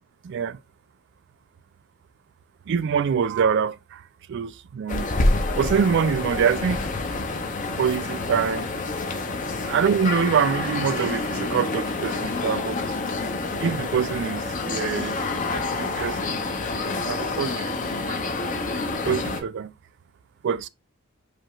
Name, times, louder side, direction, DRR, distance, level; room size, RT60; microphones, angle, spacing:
voice 1, 0.2-0.6 2.7-4.0 4.3-5.1 5.6-6.9 7.8-8.7 9.7-12.8 13.6-15.2 15.5-16.5 17.1-17.7 18.1-18.2 19.0-19.7 20.4-20.7, right 7 dB, 55° right, 0.3 m, -25 dB
sound 1, 4.9-19.4, left 3 dB, 40° left, 0.6 m, -28 dB
5.0 x 2.3 x 3.0 m
head